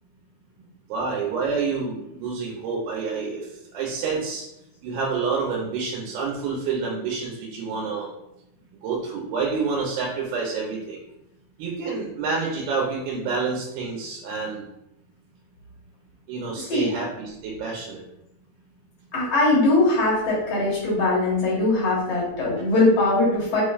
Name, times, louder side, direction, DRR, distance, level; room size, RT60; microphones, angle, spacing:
voice 1, 0.9-3.5 3.7-4.4 4.8-8.1 8.8-11.0 11.6-14.6 16.3-18.0, right 4 dB, 85° right, -2 dB, 2.8 m, -28 dB
voice 2, 16.6-16.9 19.1-23.6, left 2 dB, 60° left, -6 dB, 1.7 m, -21 dB
6.0 x 3.2 x 2.4 m, 0.85 s
omnidirectional pair, 4.4 m